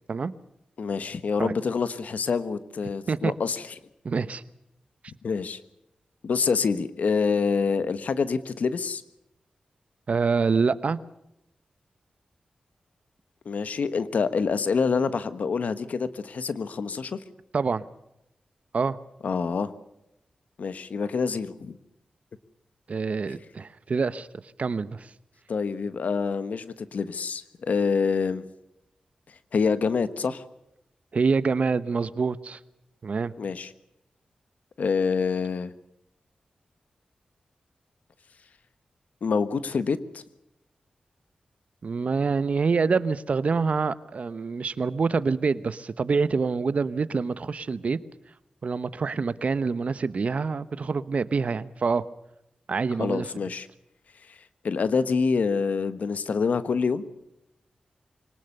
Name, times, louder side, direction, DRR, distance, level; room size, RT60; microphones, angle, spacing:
voice 1, 0.8-3.7 5.2-5.6 6.2-9.0 13.4-17.2 19.2-19.7 20.6-21.8 25.5-28.4 29.5-30.4 33.4-33.7 34.8-35.7 39.2-40.2 53.0-53.7 54.3-54.4 54.6-57.0, left 5 dB, 75° left, 13 dB, 1.3 m, -26 dB
voice 2, 4.0-4.4 10.1-11.0 17.5-17.9 18.7-19.0 22.9-24.3 24.6-25.1 31.1-32.6 33.0-33.3 41.8-48.0 48.6-52.0 52.7-53.3, right 4 dB, 60° right, 15 dB, 1.0 m, -26 dB
24.0 x 19.0 x 6.7 m, 0.85 s
cardioid pair, 65°, 3 cm